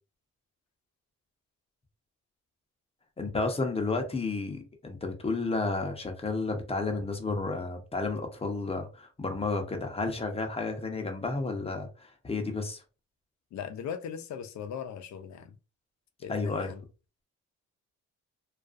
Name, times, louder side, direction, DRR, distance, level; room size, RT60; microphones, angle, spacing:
voice 1, 3.2-12.8 16.3-16.7, left 3 dB, 20° left, 0.7 m, -32 dB
voice 2, 13.5-15.6 16.2-16.8, left 8 dB, 65° left, 0.5 m, -39 dB
2.4 x 2.3 x 2.5 m
cardioid pair, 90°, 30 cm